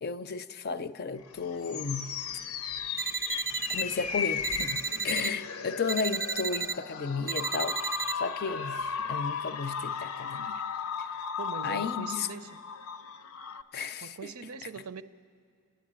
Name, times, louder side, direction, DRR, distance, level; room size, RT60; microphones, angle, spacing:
voice 1, 0.0-2.1 3.7-4.8 5.0-10.6 11.0-11.1 11.6-12.3 13.7-14.3, left 5 dB, 45° left, 0.5 m, -34 dB
sound 1, 1.2-13.6, left 7 dB, 90° left, 0.7 m, -36 dB
sound 2, 3.0-3.8 4.4-5.3 5.9-6.7 7.3-8.1, right 6 dB, 10° right, 0.4 m, -32 dB
voice 2, 11.4-12.6 14.0-15.0, right 5 dB, 85° right, 0.6 m, -41 dB
29.0 x 10.5 x 8.8 m
head